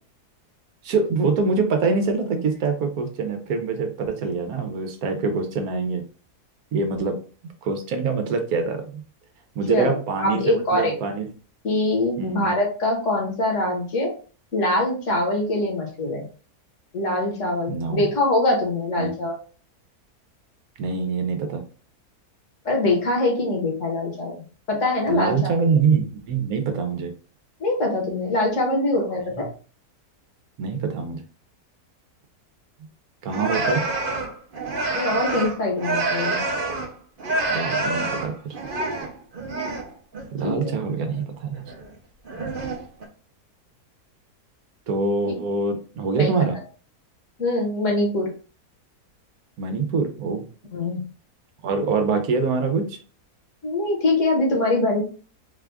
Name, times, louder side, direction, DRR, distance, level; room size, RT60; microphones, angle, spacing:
voice 1, 0.8-6.0 6.7-7.2 7.6-9.0 9.5-11.3 12.2-12.5 17.7-18.0 19.0-19.1 20.8-21.6 25.1-27.1 29.4-29.5 30.6-31.2 33.2-33.8 37.5-38.6 40.3-41.7 44.9-46.6 49.6-50.4 51.6-53.0, right 4 dB, 70° right, 6 dB, 1.3 m, -24 dB
voice 2, 9.7-10.9 11.6-14.1 14.5-16.2 16.9-19.4 22.6-24.3 24.7-25.5 27.6-29.5 34.9-36.4 40.4-40.6 46.2-46.4 47.4-48.3 50.7-51.0 53.6-55.1, left 2 dB, 50° left, -1 dB, 1.7 m, -23 dB
sound 1, 33.3-36.9 37.2-39.9 40.1-40.5 41.5-41.9 42.3-43.1, right 2 dB, 45° right, 0.8 m, -27 dB
4.1 x 2.5 x 3.4 m, 0.38 s
omnidirectional pair, 1.7 m